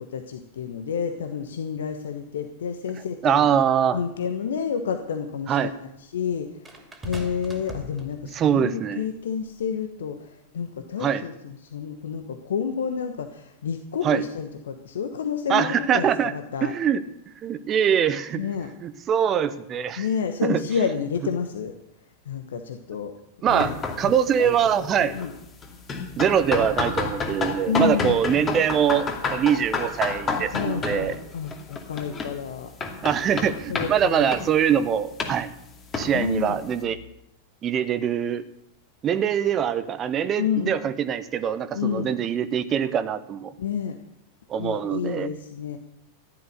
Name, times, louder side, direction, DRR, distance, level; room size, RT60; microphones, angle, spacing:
voice 1, 0.0-3.5 3.9-6.5 7.0-10.3 10.5-16.7 18.3-18.7 20.0-21.7 22.3-23.1 23.4-23.8 24.4-24.5 25.0-25.3 27.7-28.3 30.5-32.7 33.7-34.3 36.1-36.6 40.4-40.8 41.7-42.1 43.6-44.0 44.6-45.8, left 7 dB, 65° left, 7 dB, 1.1 m, -29 dB
voice 2, 3.2-4.0 5.5-5.7 8.3-9.0 11.0-11.2 14.0-14.2 15.5-16.3 16.6-17.0 17.4-18.5 18.8-20.1 20.4-20.6 23.4-23.7 24.0-25.2 26.2-31.1 33.0-35.5 35.9-37.0 37.6-38.4 39.0-43.5 44.5-45.3, right 8 dB, 30° right, 13 dB, 1.0 m, -23 dB
Two chairs crash, 6.6-8.5 9.5-9.7, right 1 dB, 15° right, 2.7 m, -40 dB
sound 1, 23.5-36.8, left 4 dB, 25° left, 2.4 m, -32 dB
15.0 x 11.0 x 6.6 m, 0.79 s
figure-of-eight pair, 90°, 0 cm